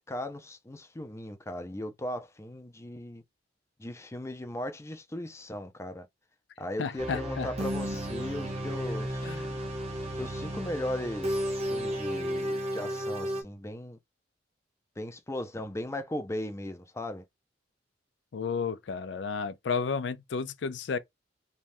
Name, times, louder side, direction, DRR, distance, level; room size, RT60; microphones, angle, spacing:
voice 1, 0.0-3.2 3.8-6.1 6.6-9.3 10.2-14.0 15.0-17.2, left 1 dB, 15° left, 0.5 m, -37 dB
voice 2, 6.8-7.5 9.2-9.5 18.3-21.0, left 5 dB, 70° left, 0.4 m, -32 dB
sound 1, 7.0-13.4, equal, 35° right, 0.8 m, -33 dB
3.2 x 2.3 x 2.6 m
head